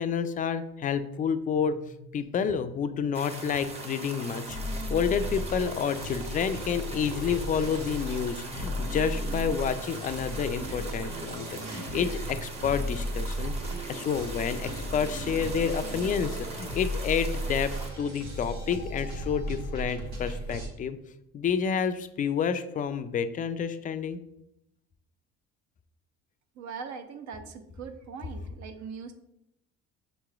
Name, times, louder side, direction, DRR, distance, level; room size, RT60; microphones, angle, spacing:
voice 1, 0.0-1.8 2.1-21.0 21.3-24.2, left 7 dB, 25° left, 11 dB, 0.3 m, -29 dB
sound 1, 1.5-9.1, left 3 dB, 75° left, 0.6 m, -49 dB
sound 2, 3.1-17.9, right 3 dB, 20° right, 0.8 m, -42 dB
sound 3, 4.5-20.7, equal, 85° right, 1.1 m, -35 dB
voice 2, 26.5-29.1, right 6 dB, 60° right, 7 dB, 0.7 m, -41 dB
6.5 x 3.0 x 2.4 m, 0.82 s
supercardioid pair, 70°, 32 cm